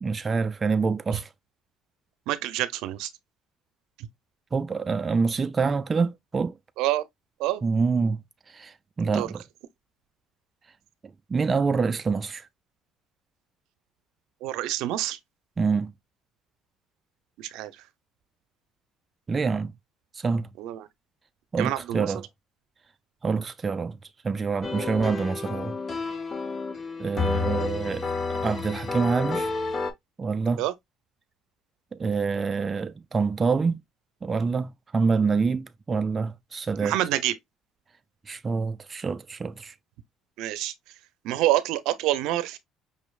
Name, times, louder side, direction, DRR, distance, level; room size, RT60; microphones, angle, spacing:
voice 1, 0.0-1.3 4.5-6.6 7.6-8.2 8.5-9.4 11.3-12.5 15.6-15.9 19.3-19.7 20.1-20.5 21.5-22.2 23.2-24.0 24.2-25.8 27.0-29.5 30.2-30.6 31.9-33.8 34.2-36.9 38.3-39.7, right 4 dB, 25° right, 0.3 m, -26 dB
voice 2, 2.3-3.1 4.0-4.1 6.8-7.0 7.4-7.6 9.0-9.3 14.4-15.2 17.4-17.7 20.6-20.9 21.6-22.1 24.7-24.9 30.6-30.7 36.8-37.4 40.4-40.7 41.2-42.6, right 14 dB, 80° right, 0.5 m, -27 dB
sound 1, 24.6-29.9, left 4 dB, 30° left, 0.9 m, -30 dB
5.4 x 3.1 x 2.3 m
cardioid pair, 100°, 0 cm